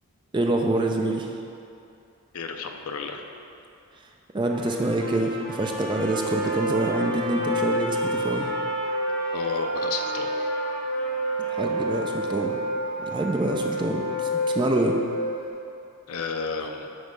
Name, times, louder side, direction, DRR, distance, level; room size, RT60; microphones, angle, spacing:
voice 1, 0.3-1.3 4.3-8.5 11.4-12.6 13.0-14.3 14.5-15.0, right 1 dB, 20° right, 2 dB, 0.4 m, -26 dB
voice 2, 2.3-3.3 9.3-10.5 16.1-16.9, left 5 dB, 75° left, 4 dB, 0.5 m, -32 dB
Trumpet, 4.5-12.3, right 1 dB, 10° left, 1.0 m, -38 dB
Wind instrument woodwind instrument, 5.6-15.5, equal, 60° right, 1.1 m, -29 dB
7.9 x 3.2 x 5.2 m, 2.6 s
head